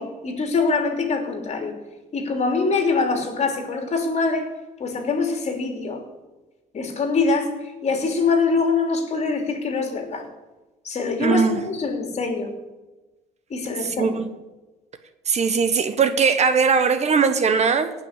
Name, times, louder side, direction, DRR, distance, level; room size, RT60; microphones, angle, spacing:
voice 1, 0.0-1.7 2.1-4.5 4.8-6.0 6.7-7.5 7.8-10.2 10.8-12.5 13.5-14.2, left 4 dB, 40° left, 4 dB, 3.1 m, -24 dB
voice 2, 11.2-11.6 13.8-14.3 15.3-17.9, right 5 dB, 40° right, 10 dB, 1.2 m, -20 dB
18.0 x 6.1 x 8.1 m, 1.1 s
cardioid pair, 110°, 17 cm